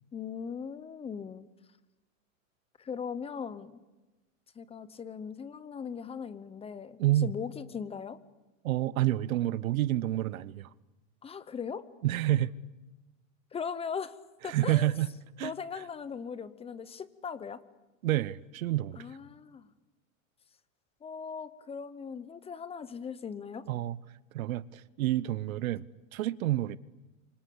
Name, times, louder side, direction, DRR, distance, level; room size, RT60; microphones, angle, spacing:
voice 1, 0.1-1.5 2.8-3.8 4.6-8.2 11.2-11.9 13.5-14.2 14.4-14.9 15.4-17.6 19.0-19.7 21.0-23.7, left 6 dB, 15° left, 0.9 m, -39 dB
voice 2, 7.0-7.3 8.6-10.7 12.0-12.5 14.4-15.1 15.4-15.5 18.0-19.0 23.7-24.0 24.3-25.8 26.1-26.8, right 14 dB, 90° right, 1.0 m, -28 dB
28.0 x 25.0 x 8.5 m
supercardioid pair, 145°, 40 cm